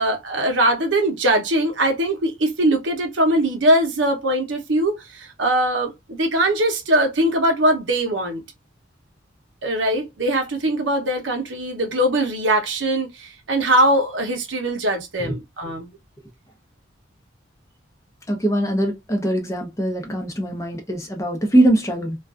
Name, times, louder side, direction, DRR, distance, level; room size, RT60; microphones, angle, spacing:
voice 1, 0.0-8.4 9.6-15.9, right 1 dB, 75° right, 0.7 m, -21 dB
voice 2, 18.3-22.2, right 1 dB, 15° left, 0.6 m, -21 dB
2.4 x 2.3 x 2.3 m
head